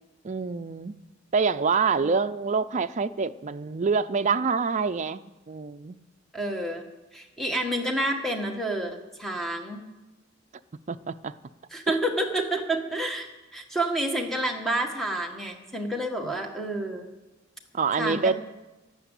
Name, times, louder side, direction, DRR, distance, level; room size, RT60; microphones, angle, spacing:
voice 1, 0.2-0.9 1.3-5.2 5.5-6.0 10.9-11.4 11.9-12.0 16.2-16.3 17.7-18.3, right 5 dB, 35° right, 9 dB, 0.4 m, -26 dB
voice 2, 6.3-6.9 7.1-9.8 11.7-17.1 18.0-18.3, right 1 dB, ahead, 2 dB, 1.5 m, -29 dB
12.0 x 11.0 x 8.2 m, 1.1 s
head